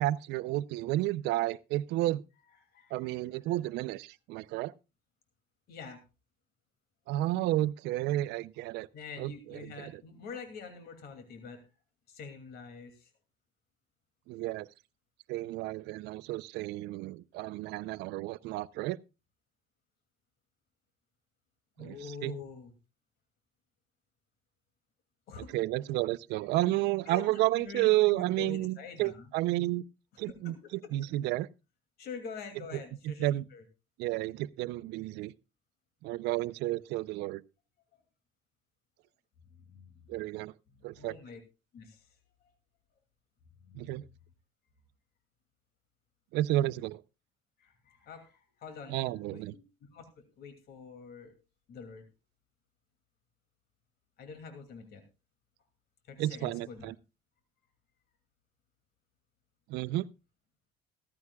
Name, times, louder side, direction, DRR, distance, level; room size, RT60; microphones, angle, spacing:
voice 1, 0.0-2.2 2.9-4.7 7.1-8.9 9.2-10.0 14.3-14.7 15.3-19.0 21.8-22.0 22.2-22.3 25.4-29.8 30.2-31.5 33.0-33.4 34.0-35.3 36.0-37.4 40.1-40.5 40.8-41.2 43.7-44.0 46.3-47.0 48.9-49.5 56.2-56.9 59.7-60.1, right 16 dB, 90° right, 0.6 m, -31 dB
voice 2, 2.7-3.6 5.7-6.0 8.9-11.6 12.1-13.1 21.8-22.7 25.3-25.5 27.0-27.2 27.6-29.3 30.4-30.8 32.0-33.6 39.5-40.1 40.8-41.4 41.7-42.1 43.6-44.0 47.6-49.6 49.9-51.3 51.7-52.1 54.2-55.0 56.1-56.9, left 5 dB, 70° left, 2.6 m, -46 dB
16.0 x 14.5 x 2.3 m
cardioid pair, 110°, 17 cm